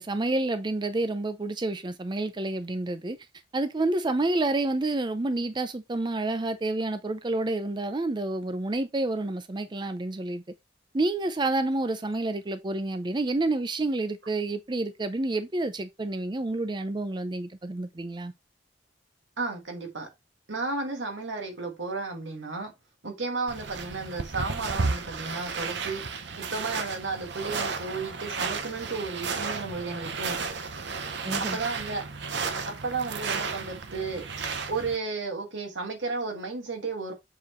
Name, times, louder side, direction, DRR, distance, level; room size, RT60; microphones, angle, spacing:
voice 1, 0.0-3.2 3.5-10.4 10.9-18.3 31.2-31.6, right 2 dB, 25° right, 0.5 m, -29 dB
voice 2, 19.4-20.1 20.5-22.7 23.0-26.0 26.3-30.4 31.5-32.0 32.7-34.2 34.7-37.1, right 3 dB, 85° right, 1.9 m, -33 dB
sound 1, 23.5-35.0, right 4 dB, 65° right, 0.8 m, -33 dB
7.4 x 4.4 x 3.1 m
head